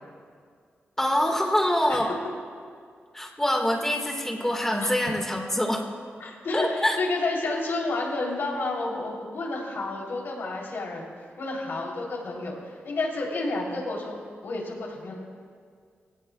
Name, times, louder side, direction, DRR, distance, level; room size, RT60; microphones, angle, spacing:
voice 1, 1.0-2.1 3.1-5.9 6.5-7.0, left 1 dB, 10° left, 1 dB, 1.8 m, -25 dB
voice 2, 6.2-11.1 11.4-15.1, left 2 dB, 70° left, -2 dB, 3.4 m, -30 dB
21.0 x 17.0 x 2.4 m, 2.1 s
wide cardioid pair, 140°, 4 cm